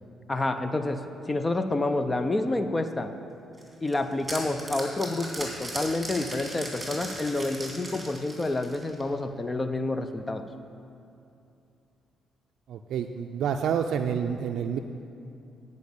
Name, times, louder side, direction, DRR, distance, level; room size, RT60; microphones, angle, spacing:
voice 1, 0.3-3.1 3.8-10.4, left 2 dB, 20° left, 8 dB, 0.5 m, -28 dB
sound 1, 3.6-9.1, right 1 dB, 15° right, 2.7 m, -38 dB
voice 2, 12.7-14.8, right 7 dB, 75° right, 5 dB, 0.4 m, -28 dB
10.5 x 5.3 x 8.1 m, 2.6 s
cardioid pair, 90°, 0 cm